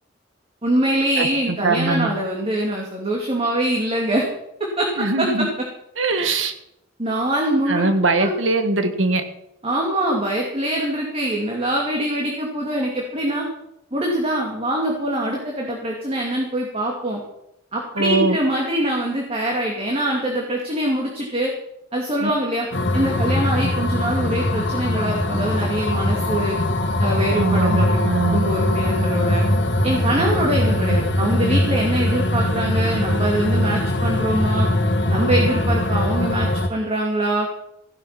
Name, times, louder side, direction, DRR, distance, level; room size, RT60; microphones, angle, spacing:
voice 1, 0.6-4.3 4.8-4.9 5.2-5.3 7.0-7.8 8.2-8.3 9.6-13.4 13.9-17.2 17.7-21.5 21.9-22.7 22.9-26.6 27.0-28.0 28.3-29.4 29.8-34.7 35.1-37.5, right 1 dB, 30° right, -1 dB, 2.6 m, -23 dB
voice 2, 1.2-2.1 5.0-5.5 6.0-6.5 7.7-9.2 18.0-18.4 22.2-22.3 27.3-28.5, right 3 dB, 80° right, 8 dB, 1.8 m, -21 dB
sound 1, 22.7-36.7, left 1 dB, 65° left, 1.7 m, -21 dB
16.0 x 11.5 x 5.9 m, 0.81 s
head